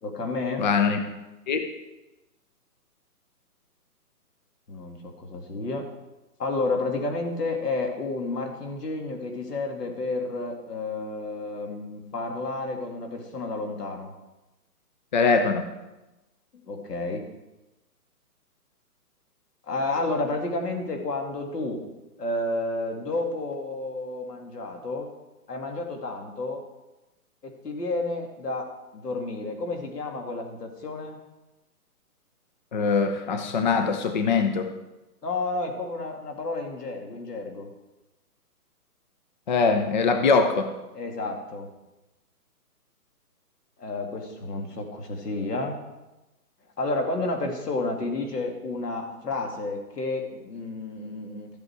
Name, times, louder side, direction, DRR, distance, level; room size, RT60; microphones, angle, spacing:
voice 1, 0.0-0.7 4.7-5.9 6.4-14.1 16.7-17.3 19.6-21.8 22.2-25.1 25.5-26.6 27.4-31.2 35.2-37.7 40.9-41.7 43.8-45.7 46.8-51.5, left 2 dB, 85° left, 3 dB, 2.7 m, -31 dB
voice 2, 0.6-1.0 1.5-1.7 15.1-15.6 32.7-34.7 39.5-40.7, left 4 dB, 30° left, 7 dB, 0.6 m, -22 dB
13.5 x 8.1 x 4.7 m, 1.0 s
hypercardioid pair, 155°, 46 cm